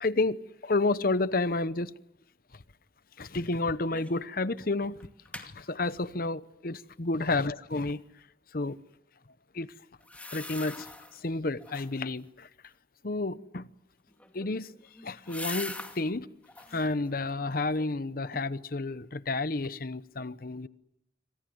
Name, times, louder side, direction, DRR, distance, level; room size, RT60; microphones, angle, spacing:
voice 1, 0.0-1.9 3.2-5.0 5.3-8.0 8.5-8.8 9.5-9.7 10.3-12.5 13.0-13.7 14.3-14.7 15.0-16.3 16.7-20.7, left 3 dB, 55° left, 1.0 m, -30 dB
sound 1, 3.9-4.3 4.6-4.7 5.0-5.5 10.0-11.2 11.6-12.1 14.1-16.0 16.4-16.9 17.3-18.0 18.3-18.4, left 2 dB, 10° left, 2.3 m, -42 dB
27.5 x 25.5 x 7.9 m
head